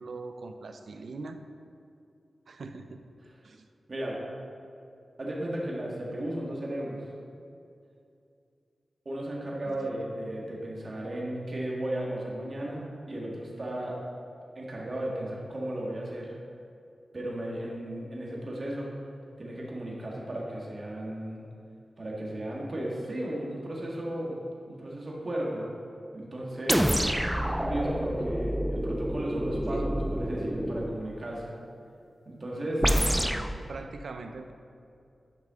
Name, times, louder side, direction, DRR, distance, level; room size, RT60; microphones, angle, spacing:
voice 1, 0.0-1.4 2.5-3.1 3.4-3.7 9.6-9.8 29.7-29.9 32.9-33.2 33.7-34.5, right 3 dB, 80° right, 7 dB, 0.5 m, -41 dB
voice 2, 3.9-4.2 5.2-7.1 9.1-14.0 14.6-16.4 17.1-18.9 19.4-21.4 22.0-24.4 24.7-25.7 26.1-27.0 27.4-31.5 32.3-32.9, right 1 dB, 50° right, -3 dB, 1.8 m, -35 dB
sound 1, 26.7-31.0 32.8-33.5, equal, 5° right, 0.4 m, -28 dB
10.5 x 5.6 x 3.7 m, 2.5 s
wide cardioid pair, 65°, 0 cm